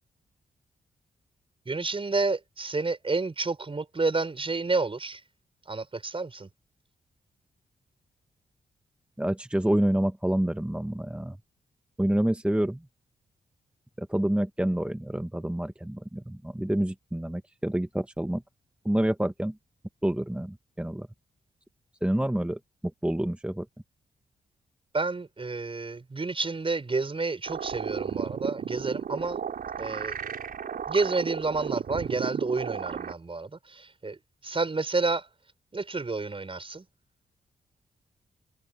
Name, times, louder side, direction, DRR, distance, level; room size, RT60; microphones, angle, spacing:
voice 1, 1.7-5.2 5.7-6.5 24.9-29.4 29.8-30.2 30.9-34.2 34.4-35.3 35.7-36.8, right 3 dB, 35° right, 5.9 m, -30 dB
voice 2, 9.2-11.4 12.0-12.8 14.0-18.4 18.8-19.6 20.0-21.1 22.0-22.6 23.0-23.7, right 1 dB, 5° right, 1.2 m, -27 dB
sound 1, 27.5-33.1, right 7 dB, 70° right, 4.9 m, -34 dB
cardioid pair, 60°, 16 cm